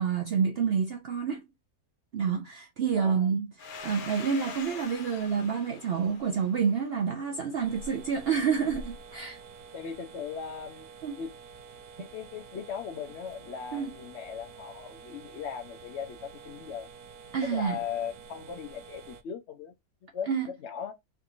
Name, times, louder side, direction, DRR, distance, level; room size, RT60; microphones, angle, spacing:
voice 1, 0.0-1.4 2.1-3.5 3.8-9.4 11.0-11.1 13.7-13.9 17.3-17.8 20.3-20.5, right 6 dB, 65° right, 0.6 m, -28 dB
voice 2, 3.0-3.3 9.7-10.9 11.2-11.3 12.0-16.9 17.4-19.7 20.1-20.9, left 7 dB, 60° left, 0.7 m, -38 dB
Domestic sounds home sounds, 3.6-8.0, left 5 dB, 85° left, 1.2 m, -44 dB
sound 1, 7.5-19.2, right 4 dB, 85° right, 1.1 m, -48 dB
3.4 x 2.8 x 2.4 m
omnidirectional pair, 1.5 m